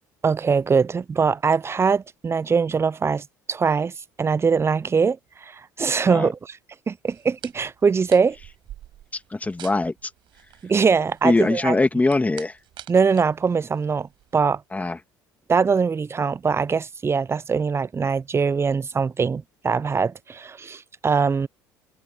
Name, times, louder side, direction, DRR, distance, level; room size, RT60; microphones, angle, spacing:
voice 1, 0.2-6.4 6.9-8.4 10.6-11.8 12.9-14.6 15.5-21.5, right 5 dB, 25° right, 0.8 m, -22 dB
sound 1, 7.1-14.4, right 13 dB, 55° right, 5.4 m, -47 dB
voice 2, 9.1-10.1 11.2-12.6 14.7-15.0, left 2 dB, 15° left, 2.4 m, -22 dB
hypercardioid pair, 65°, 10 cm